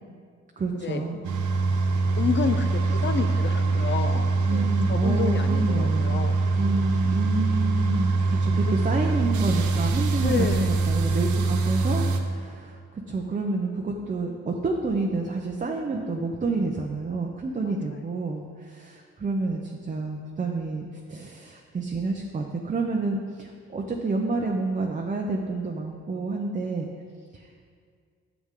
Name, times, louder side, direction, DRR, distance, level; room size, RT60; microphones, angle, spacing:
voice 1, 0.6-1.2 4.5-6.2 6.6-26.9 27.3-27.5, right 3 dB, 25° right, 0 dB, 0.7 m, -29 dB
sound 1, 1.2-12.2, right 3 dB, 75° right, 0.9 m, -24 dB
voice 2, 2.2-6.5 8.6-9.2 9.5-9.7 10.2-10.8 17.6-18.0, left 5 dB, 40° left, 9 dB, 0.7 m, -30 dB
9.5 x 7.1 x 3.8 m, 2.1 s
cardioid pair, 90°, 30 cm